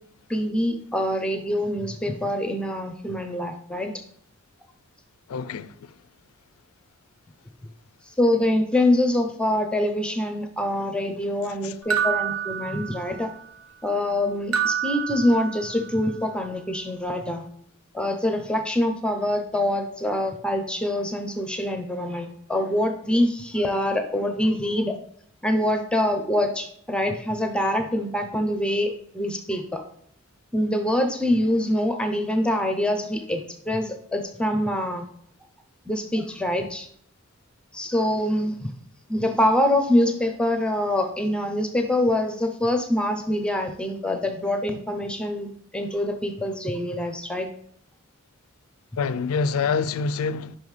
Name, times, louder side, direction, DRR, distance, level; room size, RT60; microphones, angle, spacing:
voice 1, 0.3-3.9 8.2-13.3 13.8-17.5 17.9-24.9 25.4-29.8 30.5-35.1 35.9-36.9 37.7-38.7 39.1-47.5, left 1 dB, 5° left, 0.5 m, -25 dB
voice 2, 5.3-5.7 11.6-11.7 49.0-50.6, left 5 dB, 85° left, 0.4 m, -26 dB
sound 1, 11.9-13.4 14.5-16.0, right 8 dB, 90° right, 0.7 m, -28 dB
5.5 x 5.4 x 3.2 m
head